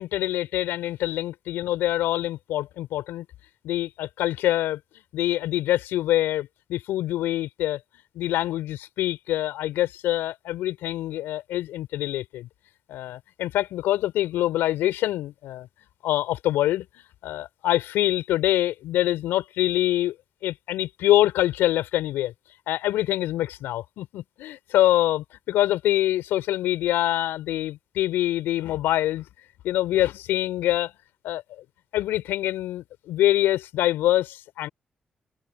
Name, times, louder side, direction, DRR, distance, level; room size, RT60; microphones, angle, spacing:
voice 1, 0.0-3.2 3.6-4.8 5.1-7.8 8.1-12.5 12.9-15.7 16.0-20.1 20.4-22.3 22.7-29.3 29.6-30.9 31.2-31.6 31.9-34.7, left 14 dB, 80° left, 4.8 m, -25 dB
hypercardioid pair, 40°, 4 cm